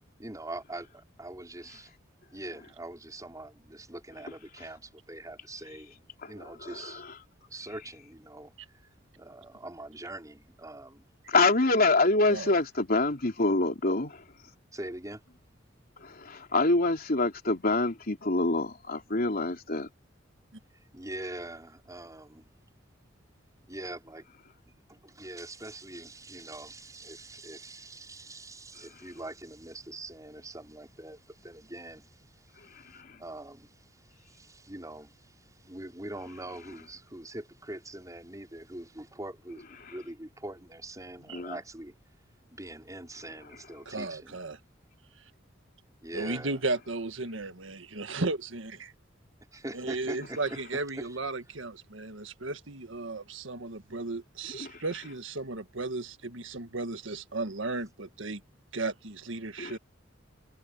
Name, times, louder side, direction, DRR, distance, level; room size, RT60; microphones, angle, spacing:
voice 1, 0.2-1.9 2.3-7.0 7.5-8.9 9.2-11.0 14.7-15.2 20.9-22.5 23.7-24.3 24.9-41.9 42.5-44.4 46.0-46.6 49.5-50.4 51.0-51.1, right 1 dB, 20° right, 5.5 m, -43 dB
voice 2, 6.2-7.1 11.3-14.2 16.0-19.9 32.6-33.2 39.8-40.0 41.3-41.6 54.5-54.8 59.6-59.8, left 2 dB, 50° left, 3.5 m, -27 dB
voice 3, 43.8-44.6 46.1-48.9 49.7-58.4 58.7-59.8, right 3 dB, 90° right, 1.6 m, -35 dB
head